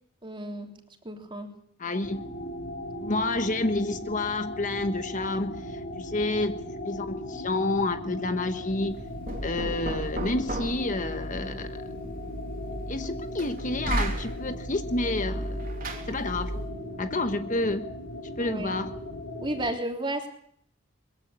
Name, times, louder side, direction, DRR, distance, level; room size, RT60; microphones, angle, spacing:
voice 1, 0.2-0.7 1.0-1.5 18.4-18.7 19.4-20.3, right 1 dB, 25° right, 4 dB, 3.3 m, -32 dB
voice 2, 1.8-2.2 3.0-9.0 9.4-12.1 12.9-15.6 16.1-16.5 17.0-17.9 18.4-19.0, left 2 dB, 40° left, 9 dB, 1.2 m, -29 dB
sound 1, 2.0-19.7, left 1 dB, 70° left, 5.8 m, -38 dB
Knock, 8.9-16.8, right 1 dB, 45° right, 3.1 m, -35 dB
22.5 x 15.5 x 8.7 m, 0.65 s
head